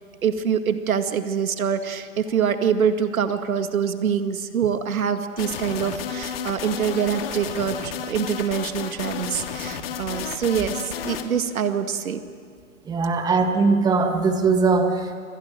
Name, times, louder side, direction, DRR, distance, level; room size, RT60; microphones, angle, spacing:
voice 1, 0.2-12.2, right 7 dB, 80° right, 8 dB, 2.2 m, -25 dB
sound 1, 5.4-11.2, left 8 dB, 45° left, 2.5 m, -32 dB
voice 2, 12.9-15.1, right 4 dB, 10° right, 6 dB, 1.8 m, -20 dB
29.5 x 26.0 x 7.6 m, 2.1 s
hypercardioid pair, 155°, 42 cm